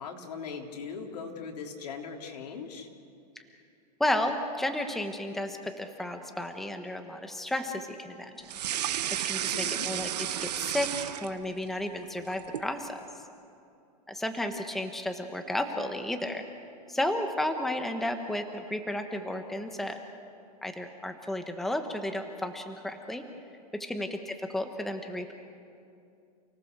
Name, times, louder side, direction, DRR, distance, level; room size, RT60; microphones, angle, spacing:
voice 1, 0.0-2.9 9.4-9.9, left 5 dB, 80° left, 2 dB, 3.5 m, -40 dB
voice 2, 4.0-8.5 8.7-9.0 9.2-13.0 14.1-16.4 16.9-20.0 20.6-23.2 23.8-25.3, left 1 dB, ahead, 5 dB, 1.1 m, -33 dB
sound 1, 8.5-11.7 12.0-12.7, right 11 dB, 85° right, 1.1 m, -32 dB
29.5 x 18.5 x 6.7 m, 2.5 s
supercardioid pair, 155°, 20 cm